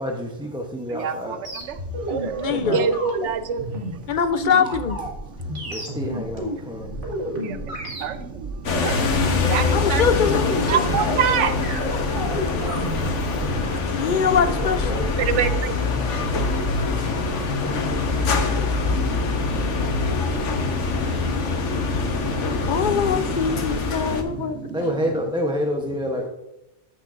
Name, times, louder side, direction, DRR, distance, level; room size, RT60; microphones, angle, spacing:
voice 1, 0.0-1.4 2.2-2.9 5.7-6.9 14.5-15.2 24.7-26.3, equal, 5° right, 1 dB, 0.7 m, -28 dB
voice 2, 0.9-1.4 1.7-1.8 2.1-3.7 5.4-5.5 6.9-10.0 10.7-14.2 15.0-22.9 23.2-24.8, right 7 dB, 80° right, 10 dB, 1.0 m, -30 dB
sound 1, 1.4-13.6, equal, 45° right, 2.2 m, -31 dB
voice 3, 2.3-2.9 4.1-5.0 9.7-10.6 13.9-14.9 22.7-24.6, left 6 dB, 50° left, 10 dB, 0.7 m, -23 dB
sound 2, 8.6-24.2, left 4 dB, 80° left, 1.3 m, -24 dB
14.5 x 6.5 x 2.5 m, 0.91 s
omnidirectional pair, 1.2 m